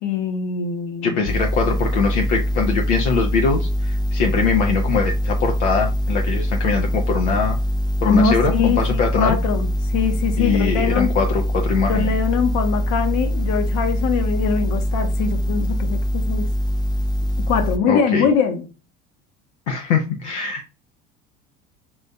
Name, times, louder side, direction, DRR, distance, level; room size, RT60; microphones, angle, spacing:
voice 1, 0.0-1.3 8.0-11.1 11.9-16.4 17.5-18.7, left 6 dB, 55° left, 0.9 m, -22 dB
voice 2, 1.0-7.6 8.0-9.4 10.4-12.1 17.9-18.3 19.7-20.7, left 5 dB, 80° left, 0.6 m, -22 dB
sound 1, 1.3-17.8, equal, 15° left, 0.3 m, -23 dB
5.4 x 2.6 x 2.2 m
hypercardioid pair, 70°, 35 cm